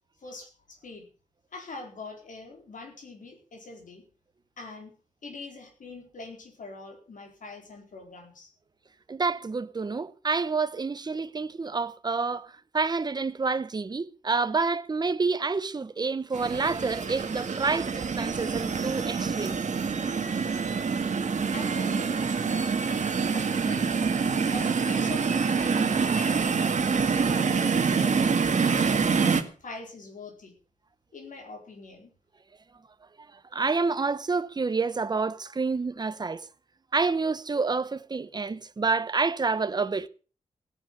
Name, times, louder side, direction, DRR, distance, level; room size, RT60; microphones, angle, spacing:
voice 1, 0.2-1.1 1.5-4.0 4.6-4.9 5.2-8.5 21.5-23.9 24.4-26.7 27.0-28.6 29.6-30.5 31.1-32.1, left 3 dB, 75° left, 4.5 m, -43 dB
voice 2, 9.1-19.6 33.5-36.5 36.9-40.1, right 4 dB, 30° right, 0.8 m, -28 dB
sound 1, 16.3-29.4, right 5 dB, 60° right, 1.8 m, -26 dB
16.5 x 10.5 x 6.6 m
wide cardioid pair, 145°, 14 cm